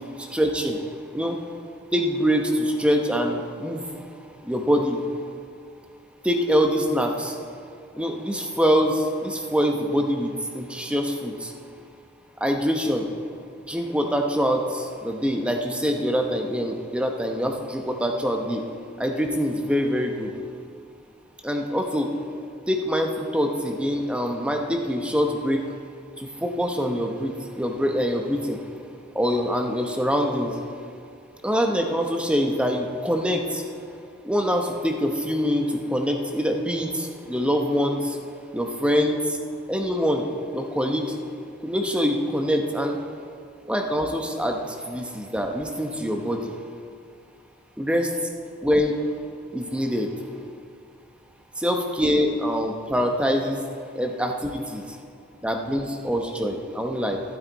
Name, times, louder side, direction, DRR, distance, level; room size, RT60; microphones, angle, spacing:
voice 1, 0.2-0.8 1.1-1.4 1.9-3.8 4.4-5.0 6.2-7.4 8.0-11.5 12.4-13.1 13.7-18.6 19.0-20.3 21.4-22.1 22.7-25.6 26.2-28.6 29.1-30.5 31.4-33.6 34.2-38.2 38.5-39.4 39.7-40.3 40.5-41.1 41.6-43.0 43.7-46.5 47.8-48.1 48.6-49.0 49.5-50.1 51.6-53.6 53.9-54.8 55.4-57.2, equal, 5° right, 3 dB, 0.8 m, -24 dB
12.5 x 12.0 x 4.1 m, 2.3 s
head